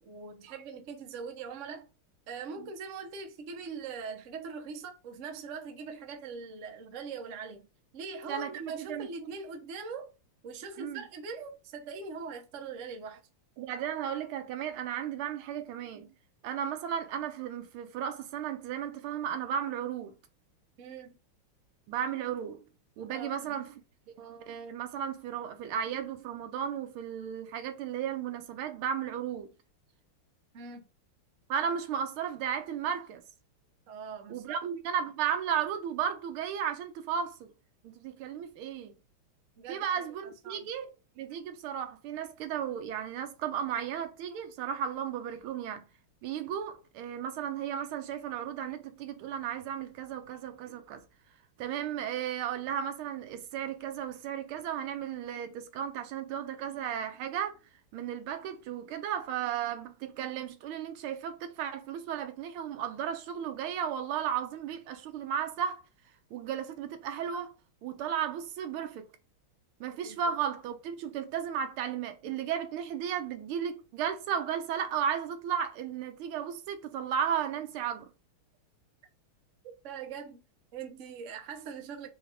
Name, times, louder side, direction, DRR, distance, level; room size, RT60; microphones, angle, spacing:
voice 1, 0.0-1.9 2.3-7.7 7.9-10.1 10.4-13.2 20.8-21.2 23.1-23.7 30.5-30.9 33.9-34.6 39.6-40.7 70.0-70.3 79.6-80.4 80.7-82.1, right 5 dB, 60° right, 0.8 m, -42 dB
voice 2, 13.6-16.1 16.4-20.1 21.9-22.6 23.0-23.7 24.1-29.5 31.5-33.2 34.3-37.5 37.8-38.9 39.7-40.9 41.2-45.8 46.2-51.0 51.6-57.6 57.9-65.8 66.3-67.5 67.8-69.1 69.8-78.1, right 8 dB, 80° right, 1.5 m, -34 dB
4.5 x 2.3 x 4.8 m
omnidirectional pair, 2.4 m